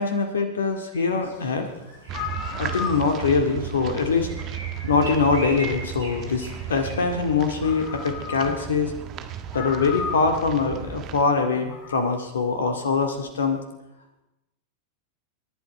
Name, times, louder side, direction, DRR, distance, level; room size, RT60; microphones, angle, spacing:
voice 1, 0.0-1.7 2.6-4.3 4.8-8.9 9.5-13.6, left 4 dB, 65° left, 6 dB, 2.2 m, -23 dB
sound 1, 0.9-7.0, right 1 dB, 85° right, 6.7 m, -41 dB
sound 2, 1.7-1.8 2.0-3.4 4.8-4.9 7.2-7.3 7.6-8.8 9.1-9.2 9.5-10.5 11.5-12.2, left 6 dB, 40° left, 2.7 m, -34 dB
sound 3, 2.1-11.2, right 10 dB, 35° right, 1.5 m, -35 dB
28.0 x 11.5 x 4.5 m, 0.95 s
figure-of-eight pair, 90°, 0 cm